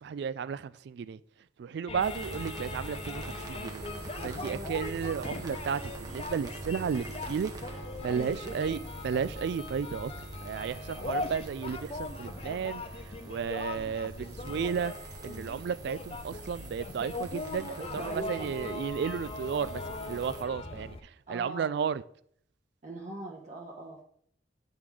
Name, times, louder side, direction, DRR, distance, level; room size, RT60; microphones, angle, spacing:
voice 1, 0.0-1.2 1.6-3.8 4.2-7.5 8.0-10.1 10.4-12.8 13.2-14.9 15.2-22.0, right 6 dB, 65° right, 0.3 m, -33 dB
sound 1, 1.9-21.0, left 2 dB, 35° left, 0.5 m, -40 dB
sound 2, 2.0-20.4, right 2 dB, 20° right, 0.8 m, -45 dB
voice 2, 4.1-4.7 8.0-8.8 10.9-11.4 17.7-18.8 20.6-20.8 21.3-21.8 22.8-24.0, right 2 dB, 45° right, 1.0 m, -42 dB
8.7 x 3.7 x 4.8 m
head